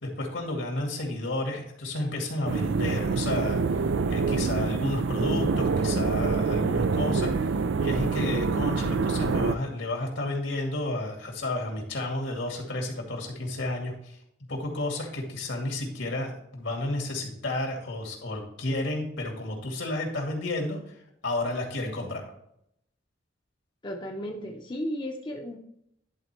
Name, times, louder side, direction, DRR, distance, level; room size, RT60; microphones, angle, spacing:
voice 1, 0.0-3.8 4.1-7.4 7.8-14.2 14.5-21.0 21.2-22.2, left 2 dB, 75° left, 1 dB, 2.3 m, -31 dB
sound 1, 2.5-9.6, right 4 dB, 75° right, 0.4 m, -26 dB
voice 2, 23.8-25.6, equal, 25° left, 1 dB, 0.8 m, -34 dB
11.0 x 3.9 x 4.5 m, 0.74 s
head